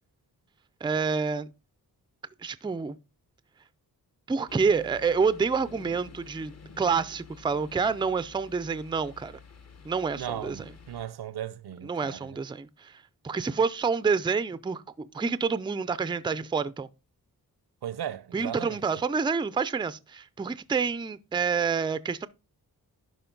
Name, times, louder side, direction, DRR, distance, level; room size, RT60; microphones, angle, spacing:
voice 1, 0.8-1.5 2.4-3.0 4.3-9.4 9.8-10.6 11.8-16.9 18.3-22.3, right 5 dB, 15° right, 0.3 m, -28 dB
sound 1, 4.5-11.1, left 4 dB, 45° left, 1.0 m, -49 dB
voice 2, 10.1-12.4 17.8-18.8, right 10 dB, 90° right, 0.7 m, -37 dB
11.5 x 5.2 x 3.8 m
wide cardioid pair, 135°, 37 cm